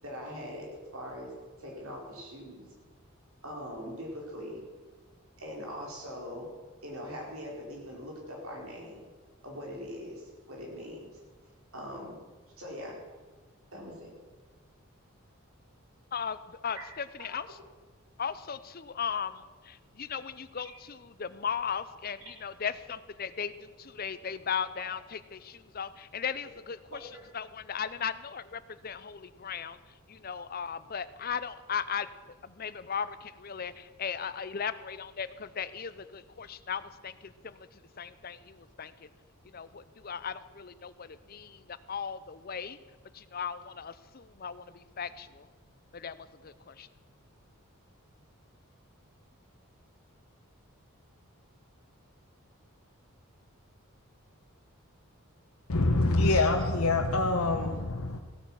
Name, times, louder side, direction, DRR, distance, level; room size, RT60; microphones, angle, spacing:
voice 1, 0.0-0.7 0.9-1.3 1.6-2.6 3.4-4.6 5.4-6.5 6.8-9.0 9.4-11.1 11.7-12.2 12.6-13.0 13.7-14.1 16.8-16.9 17.2-17.3 26.9-27.0, equal, 70° right, 4.6 m, -41 dB
voice 2, 16.1-17.5 18.2-27.1 27.3-29.8 30.1-32.1 32.4-33.7 34.0-37.7 38.0-39.1 39.5-42.8 43.3-45.5 45.9-46.9, left 7 dB, 40° left, 0.6 m, -37 dB
voice 3, 55.7-58.2, left 2 dB, 80° left, 1.1 m, -25 dB
16.0 x 8.9 x 7.4 m
head